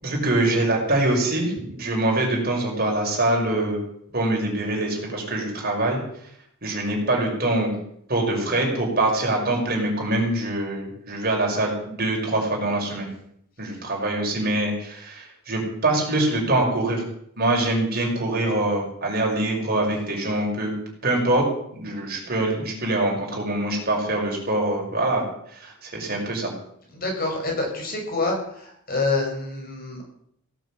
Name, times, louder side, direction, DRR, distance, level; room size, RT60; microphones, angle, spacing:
voice 1, 0.0-3.8 4.1-6.0 6.6-7.7 8.1-13.1 13.6-17.0 17.4-20.7 21.0-21.4 21.7-26.5, right 2 dB, 45° right, -1 dB, 5.9 m, -24 dB
voice 2, 26.9-30.0, left 3 dB, 45° left, 0 dB, 6.0 m, -27 dB
17.5 x 9.3 x 8.6 m, 0.70 s
head